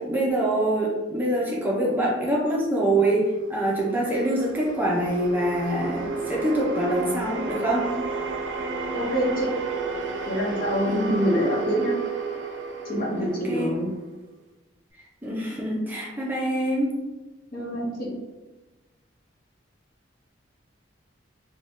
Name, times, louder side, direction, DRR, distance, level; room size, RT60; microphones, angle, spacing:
voice 1, 0.1-7.9 10.9-11.3 13.1-13.7 15.2-16.9, right 1 dB, 10° right, -4 dB, 0.4 m, -25 dB
sound 1, 3.7-14.0, right 4 dB, 75° right, 0.5 m, -32 dB
voice 2, 8.9-9.5 10.3-12.0 12.8-13.9 17.5-18.1, equal, 50° left, -4 dB, 0.9 m, -26 dB
2.6 x 2.2 x 3.4 m, 1.2 s
head